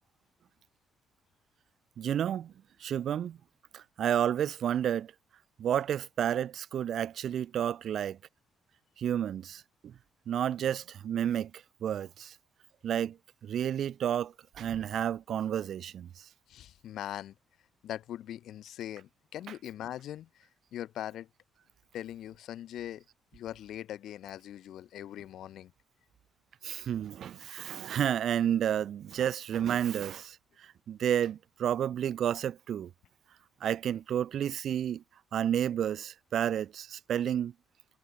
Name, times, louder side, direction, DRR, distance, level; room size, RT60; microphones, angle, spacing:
voice 1, 2.0-2.5 2.8-3.4 3.7-5.1 5.6-8.2 9.0-9.9 10.3-11.5 11.8-12.3 12.8-13.1 13.4-16.1 19.5-19.6 26.6-30.4 30.9-32.9 33.6-35.0 35.3-37.5, right 9 dB, 55° right, 0.5 m, -31 dB
voice 2, 16.5-17.3 17.8-21.3 21.9-23.0 23.3-25.7, left 12 dB, 65° left, 3.7 m, -41 dB
cardioid pair, 155°, 0 cm